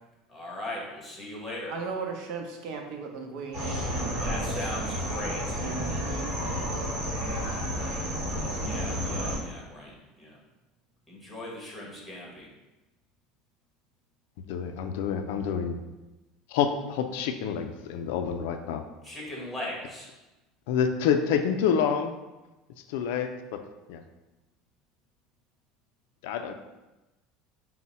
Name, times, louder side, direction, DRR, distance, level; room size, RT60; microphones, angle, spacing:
voice 1, 0.3-1.7 4.2-5.6 8.5-10.4 11.1-12.5 19.0-20.1, left 1 dB, 5° left, -4 dB, 1.1 m, -38 dB
voice 2, 1.7-4.6 5.6-7.0 7.3-7.6, right 4 dB, 65° right, 2 dB, 0.6 m, -37 dB
sound 1, 3.5-9.4, equal, 45° right, 1.5 m, -31 dB
voice 3, 14.5-15.8 16.5-18.8 20.7-22.1 22.9-23.6 23.9-24.0 26.2-26.5, left 7 dB, 80° left, 7 dB, 0.3 m, -27 dB
4.5 x 2.1 x 4.1 m, 1.1 s
cardioid pair, 145°, 0 cm